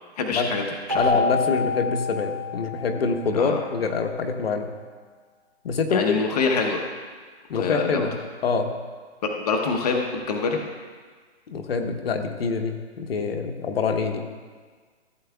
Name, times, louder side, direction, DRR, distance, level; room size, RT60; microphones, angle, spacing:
voice 1, 0.2-1.2 3.3-3.6 5.9-6.9 7.5-8.1 9.2-10.6, left 4 dB, 35° left, 1 dB, 0.9 m, -25 dB
Keyboard (musical), 0.9-3.5, left 4 dB, 20° right, 0.3 m, -27 dB
voice 2, 1.0-4.7 5.6-6.2 7.5-8.7 11.5-14.3, left 4 dB, 60° left, 5 dB, 1.0 m, -25 dB
15.5 x 8.5 x 2.3 m, 1.5 s
hypercardioid pair, 165°, 33 cm